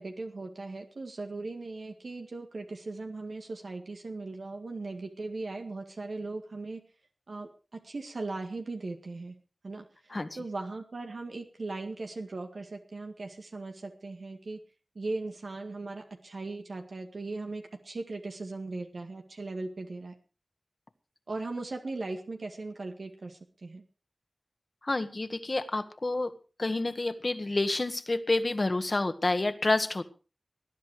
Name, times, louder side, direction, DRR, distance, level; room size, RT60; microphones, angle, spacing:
voice 1, 0.0-6.8 7.3-9.4 9.6-14.6 15.0-20.1 21.3-23.8, right 3 dB, 80° right, 4 dB, 1.9 m, -38 dB
voice 2, 24.8-26.3 26.6-30.0, left 2 dB, 50° left, 10 dB, 1.7 m, -29 dB
19.5 x 10.5 x 4.8 m, 0.35 s
cardioid pair, 45°, 0 cm